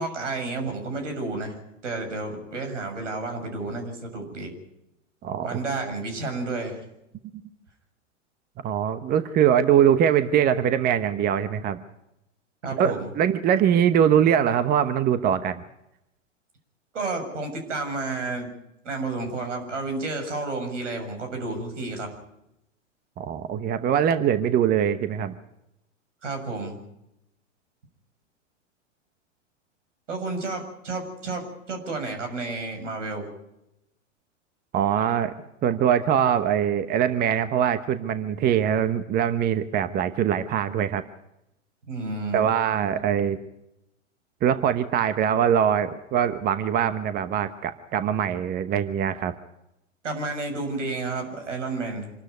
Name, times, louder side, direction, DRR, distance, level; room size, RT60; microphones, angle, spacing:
voice 1, 0.0-1.6 1.8-4.5 5.4-6.8 12.6-13.1 16.9-18.5 18.8-22.1 26.2-26.8 30.1-33.3 41.9-42.5 50.0-52.1, right 3 dB, 75° right, 5 dB, 7.0 m, -31 dB
voice 2, 5.2-5.6 8.6-11.8 12.8-15.6 23.2-25.3 34.7-35.3 35.6-41.0 42.3-43.4 44.4-49.3, right 9 dB, 25° right, 12 dB, 1.0 m, -22 dB
26.5 x 13.0 x 9.4 m, 0.86 s
figure-of-eight pair, 105°, 37 cm